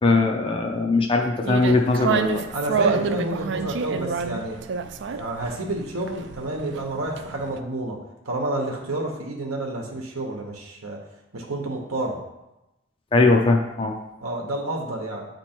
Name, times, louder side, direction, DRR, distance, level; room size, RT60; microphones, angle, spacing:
voice 1, 0.0-2.4 13.1-14.0, left 3 dB, 25° left, 2 dB, 0.4 m, -20 dB
sound 1, 1.4-7.6, right 6 dB, 55° right, 0.3 m, -28 dB
voice 2, 2.5-4.6 5.1-8.0 8.2-11.0 11.3-12.2 14.2-15.3, right 1 dB, 90° right, 0 dB, 0.9 m, -29 dB
8.6 x 2.9 x 4.3 m, 0.95 s
head